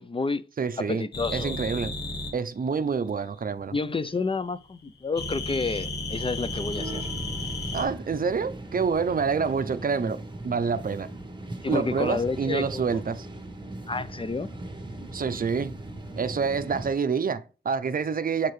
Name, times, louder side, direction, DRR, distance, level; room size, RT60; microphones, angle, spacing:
voice 1, 0.0-0.4 0.8-1.6 3.7-7.1 11.6-12.8 13.9-14.5, left 3 dB, 30° left, 0.4 m, -30 dB
voice 2, 0.6-1.0 1.3-1.9 2.3-3.7 7.7-10.2 10.4-11.1 11.7-13.3 15.1-15.8 16.2-18.5, right 5 dB, 55° right, 0.5 m, -27 dB
sound 1, 1.1-2.3 5.2-7.9, left 2 dB, 70° left, 1.4 m, -33 dB
sound 2, 6.4-16.9, right 1 dB, 25° right, 1.2 m, -39 dB
7.2 x 4.6 x 3.1 m
wide cardioid pair, 80°, 18 cm